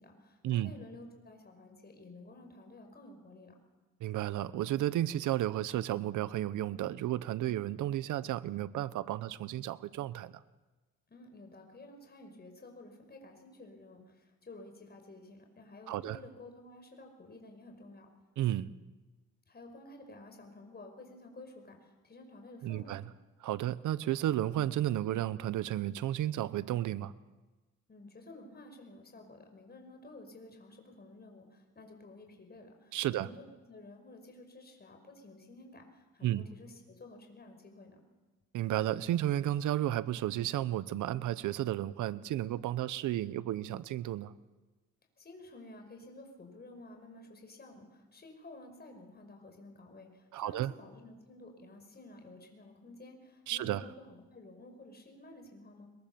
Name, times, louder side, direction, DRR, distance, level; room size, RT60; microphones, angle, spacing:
voice 1, 0.0-3.5 11.1-18.1 19.5-23.0 27.9-38.0 45.2-55.9, left 2 dB, 35° left, 4 dB, 5.5 m, -52 dB
voice 2, 4.0-10.4 15.9-16.2 18.4-18.7 22.6-23.0 23.4-27.1 32.9-33.3 36.2-36.4 38.5-44.3 50.3-50.7 53.5-53.8, right 13 dB, 80° right, 16 dB, 1.0 m, -33 dB
22.0 x 22.0 x 7.0 m, 1.2 s
cardioid pair, 90°, 30 cm